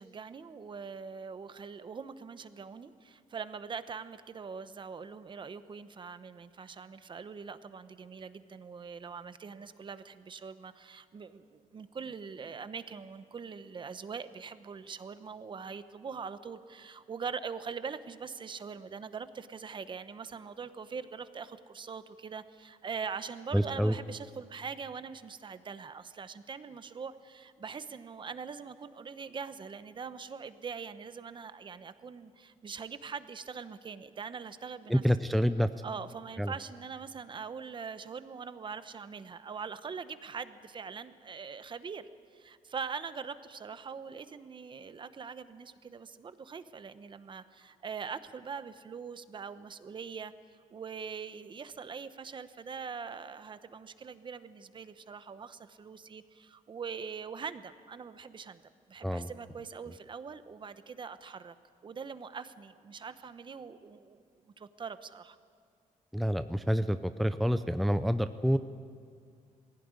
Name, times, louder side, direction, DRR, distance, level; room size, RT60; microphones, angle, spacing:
voice 1, 0.0-35.0 35.8-50.3 50.7-58.6 58.9-61.5 61.8-64.2 64.6-65.4, right 6 dB, 35° right, 12 dB, 0.9 m, -42 dB
voice 2, 23.5-23.9 34.9-35.7 36.4-36.5 59.0-59.3 66.1-68.6, equal, ahead, 10 dB, 0.5 m, -27 dB
20.5 x 16.5 x 9.6 m, 2.2 s
cardioid pair, 135°, 14 cm